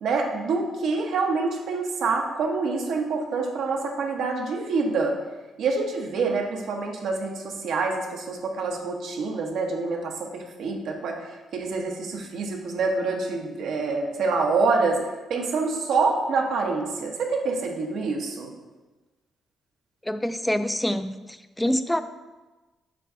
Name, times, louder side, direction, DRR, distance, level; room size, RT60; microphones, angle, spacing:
voice 1, 0.0-5.2 5.6-15.0 15.3-18.5, right 4 dB, 75° right, 1 dB, 1.0 m, -26 dB
voice 2, 20.1-21.2 21.6-22.0, left 1 dB, 10° left, 11 dB, 0.3 m, -25 dB
7.5 x 2.5 x 5.6 m, 1.2 s
cardioid pair, 95°, 0 cm